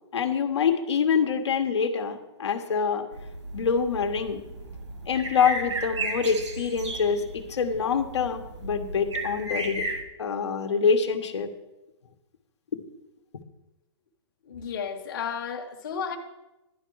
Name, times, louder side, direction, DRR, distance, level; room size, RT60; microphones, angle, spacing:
voice 1, 0.1-3.0 3.5-4.4 5.1-9.8 10.2-11.5 12.7-12.8, left 6 dB, 70° left, 1.3 m, -25 dB
sound 1, 3.1-10.0, right 2 dB, 85° right, 2.2 m, -35 dB
voice 2, 14.4-16.2, left 7 dB, 45° left, 1.2 m, -33 dB
11.0 x 10.5 x 4.7 m
hypercardioid pair, 180°, 15 cm